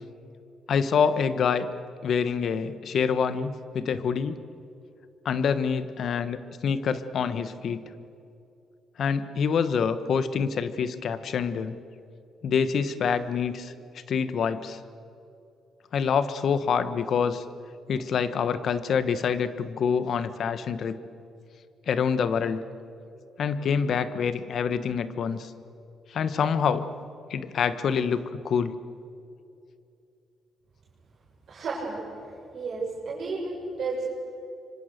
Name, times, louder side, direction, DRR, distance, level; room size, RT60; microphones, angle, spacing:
voice 1, 0.7-1.7 2.0-4.4 5.2-7.8 9.0-11.7 12.4-13.7 14.1-14.8 15.9-17.4 17.9-21.0 21.9-22.6 23.4-25.5 26.1-26.9 27.3-28.7, left 6 dB, 60° left, 12 dB, 1.3 m, -26 dB
voice 2, 31.5-32.0 32.5-34.0, right 4 dB, 60° right, -5 dB, 7.0 m, -32 dB
27.0 x 24.5 x 6.7 m, 2.6 s
cardioid pair, 90°, 0 cm